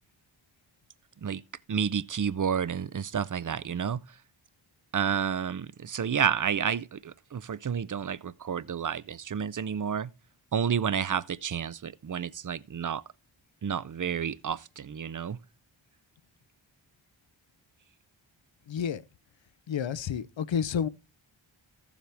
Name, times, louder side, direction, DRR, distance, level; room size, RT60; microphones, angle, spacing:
voice 1, 1.7-4.0 4.9-10.1 10.5-13.0 13.6-15.4, right 7 dB, 40° right, 0.5 m, -30 dB
voice 2, 18.7-19.0 19.7-20.9, left 7 dB, 65° left, 0.7 m, -30 dB
14.0 x 7.2 x 3.4 m
wide cardioid pair, 65°, 48 cm